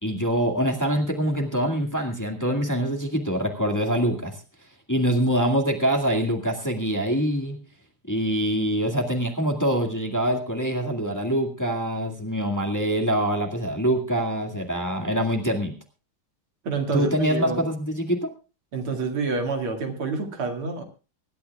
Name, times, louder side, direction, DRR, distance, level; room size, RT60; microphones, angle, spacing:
voice 1, 0.0-4.4 4.9-7.6 8.1-15.7 16.9-18.3, equal, 10° left, 2 dB, 1.8 m, -24 dB
voice 2, 16.6-17.7 18.7-20.8, right 4 dB, 90° right, 4 dB, 3.1 m, -28 dB
24.5 x 12.0 x 2.3 m, 0.33 s
omnidirectional pair, 2.3 m